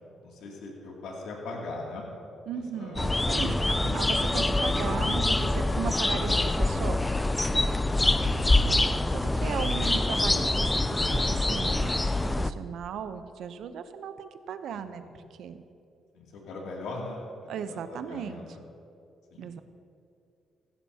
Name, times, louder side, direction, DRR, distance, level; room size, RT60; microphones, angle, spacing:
voice 1, 0.2-2.1 2.5-3.6 8.0-8.7 14.7-15.1 16.1-17.8 18.1-18.5 19.3-19.5, left 2 dB, 85° left, -2 dB, 2.6 m, -41 dB
voice 2, 2.5-7.0 9.1-10.7 11.0-15.0 15.4-15.6 17.5-18.4 19.4-19.6, right 8 dB, 75° right, 10 dB, 0.7 m, -37 dB
sound 1, 3.0-12.5, left 2 dB, 15° left, 0.4 m, -25 dB
16.5 x 15.0 x 2.9 m, 2.7 s
cardioid pair, 90°, 0 cm